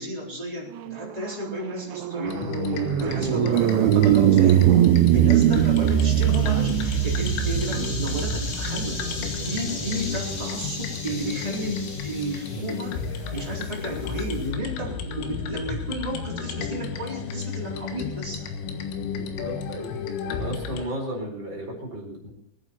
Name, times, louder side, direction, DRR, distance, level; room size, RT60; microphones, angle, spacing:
voice 1, 0.0-4.7 5.1-9.0 9.4-13.1 13.3-18.5, right 1 dB, 10° right, -3 dB, 3.2 m, -33 dB
sound 1, 0.9-10.4, right 12 dB, 80° right, 3.0 m, -22 dB
sound 2, 2.3-20.9, left 5 dB, 85° left, 4.0 m, -32 dB
sound 3, 3.5-14.5, left 3 dB, 60° left, 6.7 m, -39 dB
voice 2, 5.0-5.4 9.6-9.8 19.1-19.9 20.4-22.3, right 1 dB, 25° right, -1 dB, 4.7 m, -34 dB
23.0 x 9.6 x 4.4 m, 0.76 s
omnidirectional pair, 5.6 m